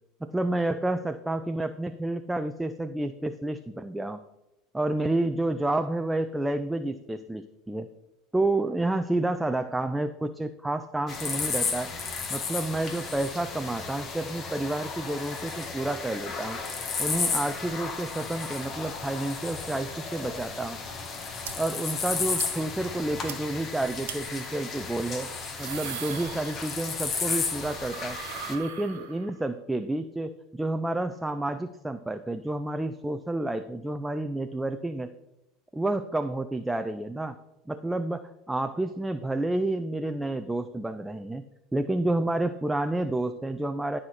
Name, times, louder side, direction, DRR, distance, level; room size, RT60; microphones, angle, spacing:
voice 1, 0.2-4.2 4.7-7.9 8.3-11.9 12.3-16.6 17.0-20.8 21.6-25.3 25.6-28.2 28.5-35.1 35.7-37.4 37.7-41.4 41.7-44.0, right 2 dB, 10° right, 8 dB, 0.5 m, -30 dB
sound 1, 11.1-28.5, left 4 dB, 40° left, 1.7 m, -33 dB
sound 2, 21.4-21.5 21.9-22.0 22.4-22.5 22.8-22.9 23.3-23.4 24.1-24.2 25.3-27.0 27.3-29.4, right 9 dB, 80° right, 1.5 m, -40 dB
12.0 x 4.3 x 6.4 m, 0.94 s
hypercardioid pair, 85°, 0 cm